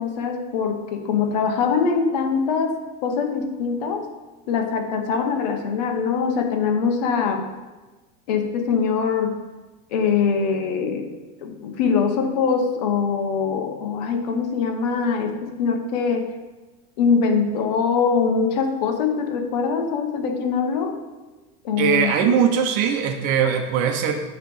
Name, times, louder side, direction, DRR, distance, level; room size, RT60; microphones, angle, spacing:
voice 1, 0.0-4.1 4.5-7.5 8.3-9.4 9.9-11.1 11.4-16.3 17.0-21.0 21.6-22.1, left 5 dB, 85° left, 5 dB, 1.1 m, -23 dB
voice 2, 21.8-24.1, right 7 dB, 40° right, 5 dB, 0.8 m, -20 dB
9.0 x 3.3 x 5.5 m, 1.2 s
supercardioid pair, 170°, 20 cm